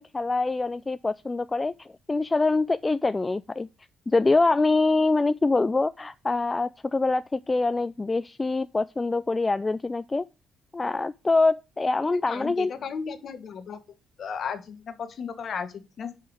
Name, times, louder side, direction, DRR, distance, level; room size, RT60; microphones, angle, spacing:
voice 1, 0.0-3.7 4.1-10.2 10.7-12.7, left 3 dB, 20° left, 0.3 m, -24 dB
voice 2, 12.1-13.8 14.2-16.1, left 6 dB, 55° left, 1.3 m, -35 dB
5.6 x 5.1 x 6.2 m
cardioid pair, 85°, 0 cm